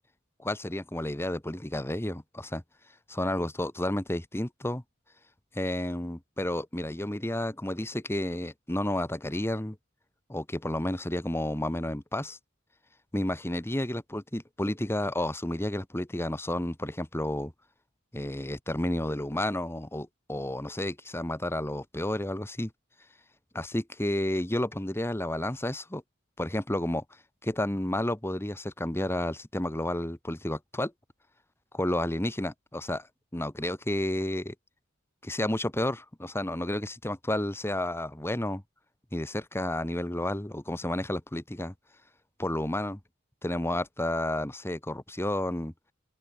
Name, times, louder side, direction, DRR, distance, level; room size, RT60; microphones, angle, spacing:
voice 1, 0.4-2.6 3.1-4.8 5.5-9.8 10.3-12.4 13.1-17.5 18.1-22.7 23.5-26.0 26.4-27.0 27.4-30.9 31.7-33.1 33.3-34.5 35.2-38.6 39.1-41.7 42.4-43.0 43.4-45.7, left 1 dB, 10° left, 1.4 m, -31 dB
open air
head